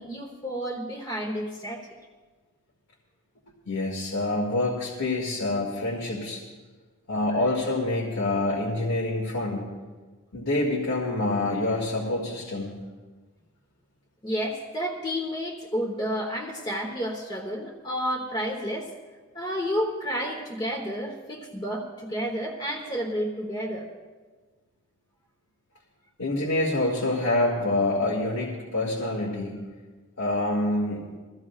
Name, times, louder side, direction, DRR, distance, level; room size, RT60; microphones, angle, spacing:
voice 1, 0.0-1.9 14.2-18.9 19.3-23.9, equal, 20° left, -1 dB, 1.2 m, -31 dB
voice 2, 3.7-6.4 7.1-9.7 10.3-12.7 26.2-29.6 30.2-31.0, left 2 dB, 80° left, -4 dB, 2.2 m, -26 dB
22.5 x 15.5 x 2.4 m, 1.3 s
head